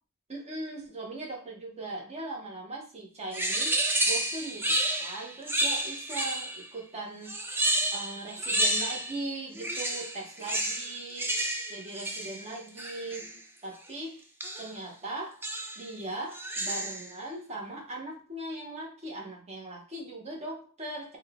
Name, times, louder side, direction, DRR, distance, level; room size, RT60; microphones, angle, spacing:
voice 1, 0.3-7.4 7.9-11.3 11.7-14.2 14.6-15.5 15.8-21.2, right 2 dB, 30° right, 0 dB, 1.0 m, -39 dB
sound 1, 3.3-6.7 7.2-9.2 9.5-13.4 14.4-14.8 15.4-15.9 16.3-17.1, right 1 dB, 10° right, 0.4 m, -30 dB
3.9 x 2.2 x 3.5 m, 0.36 s
head